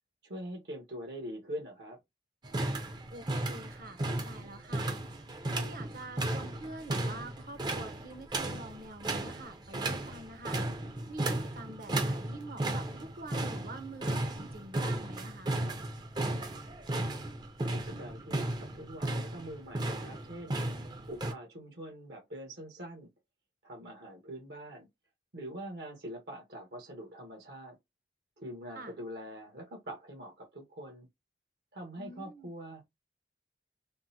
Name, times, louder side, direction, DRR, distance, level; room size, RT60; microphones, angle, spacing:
voice 1, 0.2-2.0 16.8-17.1 17.7-20.6 21.1-23.1 23.6-24.9 25.3-27.8 28.4-31.1 31.7-32.8, equal, 70° right, 1.1 m, -44 dB
sound 1, 2.4-21.3, right 2 dB, 25° right, 0.5 m, -35 dB
voice 2, 3.1-4.9 5.5-10.6 11.1-15.6 28.7-28.9 32.0-32.5, right 2 dB, 50° right, 0.8 m, -46 dB
3.6 x 2.0 x 2.8 m
head